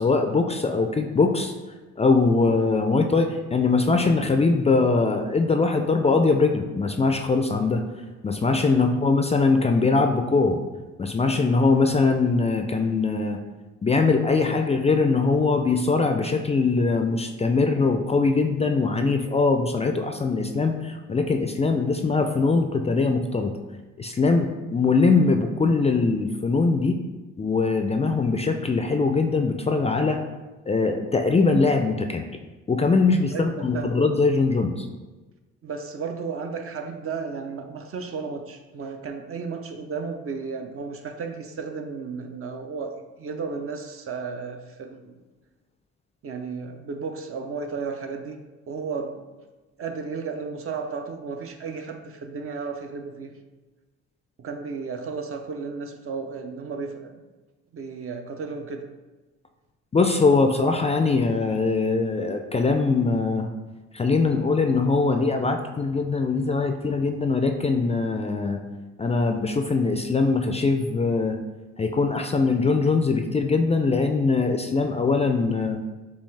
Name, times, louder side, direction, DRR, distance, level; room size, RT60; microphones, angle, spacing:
voice 1, 0.0-1.5 2.0-7.8 8.2-10.6 11.0-13.4 13.8-23.5 24.0-27.0 27.4-30.2 30.7-32.3 32.7-34.9 59.9-63.5 63.9-68.6 69.0-71.4 71.8-75.8, left 4 dB, 20° left, 5 dB, 0.3 m, -22 dB
voice 2, 33.3-33.9 35.6-45.2 46.2-48.4 48.7-49.2 49.8-53.4 54.4-57.2 57.7-58.9, right 5 dB, 50° right, 6 dB, 0.6 m, -34 dB
7.0 x 2.4 x 3.2 m, 1.2 s
cardioid pair, 90°, 30 cm